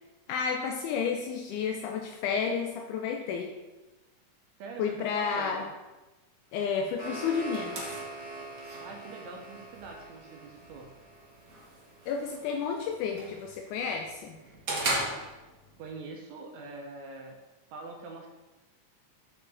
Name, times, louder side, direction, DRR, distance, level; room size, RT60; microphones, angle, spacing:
voice 1, 0.3-3.6 4.8-5.7 6.5-7.9 12.1-14.4, left 6 dB, 80° left, 3 dB, 2.1 m, -31 dB
voice 2, 4.6-5.7 8.8-10.9 15.8-17.4 17.7-18.3, right 3 dB, 70° right, 2 dB, 1.9 m, -44 dB
sound 1, 6.6-11.6, right 2 dB, 65° left, 4.0 m, -43 dB
sound 2, 6.9-15.9, right 2 dB, 45° right, 1.2 m, -39 dB
7.7 x 5.7 x 3.9 m, 1.1 s
omnidirectional pair, 3.6 m